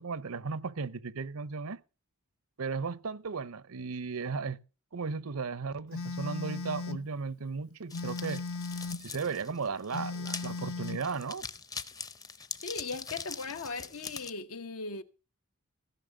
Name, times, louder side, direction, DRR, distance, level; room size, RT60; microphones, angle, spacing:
voice 1, 0.0-1.8 2.6-4.6 4.9-8.4 9.0-11.5, right 4 dB, 85° right, 0.8 m, -35 dB
Telephone, 5.9-7.1 7.9-9.1 9.9-11.1, left 3 dB, 70° left, 0.7 m, -37 dB
sound 1, 7.9-14.3, left 5 dB, 15° left, 0.6 m, -43 dB
voice 2, 12.6-15.0, left 4 dB, 85° left, 1.1 m, -38 dB
16.5 x 5.8 x 7.7 m
head